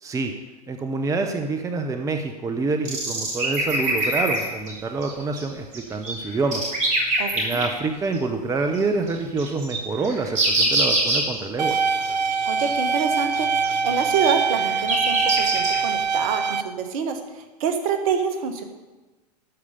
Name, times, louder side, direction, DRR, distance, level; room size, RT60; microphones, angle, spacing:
voice 1, 0.0-0.3 0.7-6.6 7.3-11.8, right 3 dB, 15° right, 6 dB, 0.8 m, -26 dB
sound 1, 2.8-4.7 5.0-5.4 5.7-7.6 8.1-8.2 8.7-8.8 9.1-11.4 11.7-11.8 12.0-12.1 12.3-12.4 12.6-13.0 13.3-15.8, right 2 dB, 35° right, 3.4 m, -24 dB
voice 2, 7.2-7.6 12.4-13.5 13.8-17.2 17.6-18.6, right 6 dB, 55° right, 7 dB, 1.4 m, -26 dB
sound 2, 11.6-16.6, right 5 dB, 85° right, 0.5 m, -24 dB
12.5 x 4.9 x 6.8 m, 1.2 s
figure-of-eight pair, 95°, 21 cm